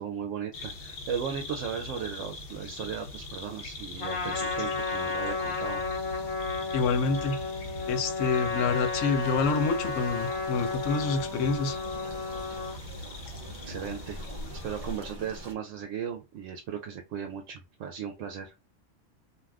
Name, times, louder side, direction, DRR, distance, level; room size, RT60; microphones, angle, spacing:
voice 1, 0.0-5.8 13.6-14.2 14.6-18.5, right 7 dB, 80° right, 0.9 m, -36 dB
sound 1, 0.5-15.0, left 2 dB, 55° left, 0.8 m, -42 dB
Trumpet, 4.0-12.8, left 4 dB, 40° left, 1.2 m, -33 dB
voice 2, 6.7-7.4 7.9-11.8, left 4 dB, 85° left, 1.0 m, -27 dB
sound 2, 9.2-15.5, equal, 35° right, 0.7 m, -44 dB
2.5 x 2.3 x 3.3 m
omnidirectional pair, 1.3 m